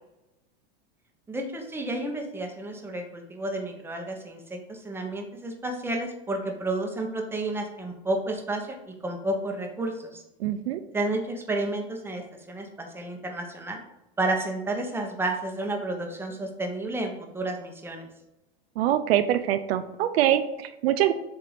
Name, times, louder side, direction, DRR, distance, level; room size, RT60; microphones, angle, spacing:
voice 1, 1.3-10.2 10.9-13.8 14.2-18.1, right 2 dB, 5° right, 2 dB, 1.0 m, -31 dB
voice 2, 10.4-10.8 18.8-21.1, right 12 dB, 75° right, 10 dB, 0.6 m, -24 dB
7.7 x 2.8 x 5.0 m, 0.96 s
hypercardioid pair, 120°, 31 cm